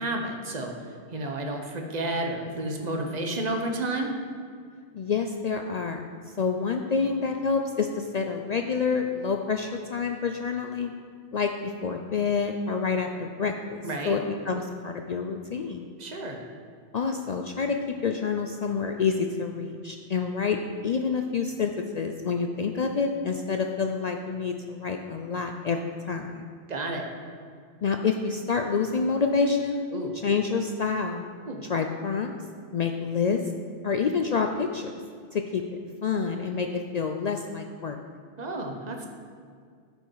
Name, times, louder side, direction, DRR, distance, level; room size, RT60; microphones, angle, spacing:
voice 1, 0.0-4.1 13.8-14.2 16.0-16.4 26.7-27.1 29.9-30.1 31.4-31.6 38.4-39.1, right 2 dB, 40° right, 3 dB, 1.0 m, -31 dB
voice 2, 4.9-6.1 6.4-10.9 11.3-13.8 14.0-14.2 14.5-15.9 16.9-17.8 18.0-26.5 27.8-29.8 30.2-31.2 31.7-32.3 32.7-33.4 33.8-34.9 35.3-35.6 36.0-38.0, left 5 dB, 60° left, 4 dB, 0.4 m, -28 dB
12.0 x 5.3 x 4.7 m, 2.1 s
omnidirectional pair, 1.2 m